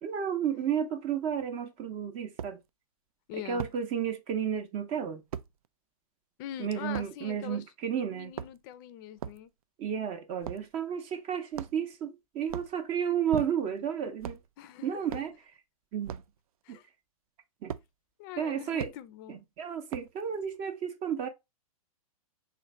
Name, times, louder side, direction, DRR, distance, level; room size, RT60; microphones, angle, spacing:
voice 1, 0.0-2.6 3.3-5.2 6.6-8.3 9.8-14.4 14.8-15.3 15.9-16.2 16.7-16.8 17.6-17.7 18.4-18.9 19.3-21.3, right 8 dB, 30° right, 0.6 m, -32 dB
sound 1, 1.4-1.5 2.4-2.6 3.6-3.8 5.3-5.5 6.9-7.1 8.2-8.7 9.2-9.4 10.4-10.7 11.5-12.0 12.4-12.8 13.3-13.8 14.2-14.5 15.1-15.3 16.0-16.3 17.7-17.9 18.8-19.0 19.9-20.2, right 9 dB, 75° right, 0.4 m, -38 dB
voice 2, 3.3-3.7 6.4-7.7 8.1-9.5 14.6-15.0 16.6-16.9 18.2-19.4, left 11 dB, 35° left, 0.4 m, -43 dB
3.2 x 2.6 x 4.0 m
hypercardioid pair, 130°, 19 cm